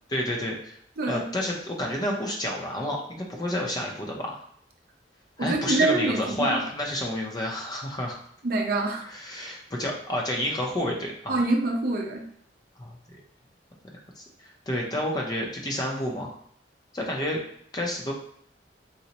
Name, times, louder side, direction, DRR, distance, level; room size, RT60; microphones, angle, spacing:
voice 1, 0.1-0.8 1.0-4.4 5.4-8.2 9.0-11.4 12.8-13.0 14.2-16.3 16.9-17.4 17.7-18.1, left 1 dB, 20° left, 0 dB, 0.5 m, -30 dB
voice 2, 1.0-1.3 5.4-6.6 8.4-9.1 11.3-12.3, right 2 dB, 55° right, 1 dB, 0.5 m, -25 dB
3.9 x 2.0 x 2.8 m, 0.65 s
head